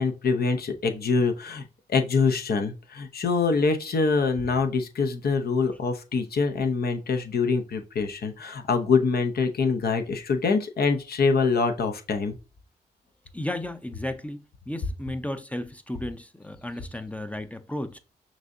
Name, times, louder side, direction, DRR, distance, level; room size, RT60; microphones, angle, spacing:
voice 1, 0.0-12.4, left 4 dB, 60° left, 0.8 m, -25 dB
voice 2, 13.3-18.0, left 1 dB, 10° left, 0.5 m, -34 dB
6.0 x 2.7 x 2.7 m
cardioid pair, 60°, 18 cm